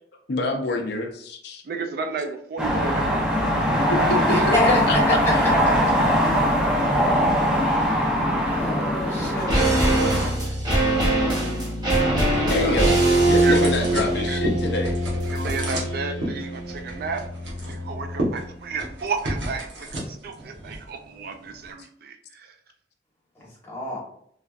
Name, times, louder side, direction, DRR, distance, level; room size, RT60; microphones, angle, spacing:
voice 1, 0.3-1.6 4.3-5.6 12.5-14.9, left 2 dB, 60° left, 4 dB, 0.5 m, -27 dB
voice 2, 1.6-4.6 12.6-12.8 13.4-13.7 14.1-14.5 15.3-17.2 17.6-22.5, right 4 dB, 55° right, 7 dB, 0.3 m, -32 dB
sound 1, 2.6-10.3, equal, 5° right, 0.6 m, -21 dB
voice 3, 4.3-4.8 5.1-5.2 8.5-9.7 23.7-24.0, left 2 dB, 15° left, -5 dB, 1.2 m, -26 dB
sound 2, 9.2-18.6 18.8-18.9, right 1 dB, 25° right, 1.2 m, -23 dB
sound 3, 11.6-21.7, right 1 dB, 70° right, 1.1 m, -34 dB
3.5 x 3.2 x 2.4 m, 0.66 s
head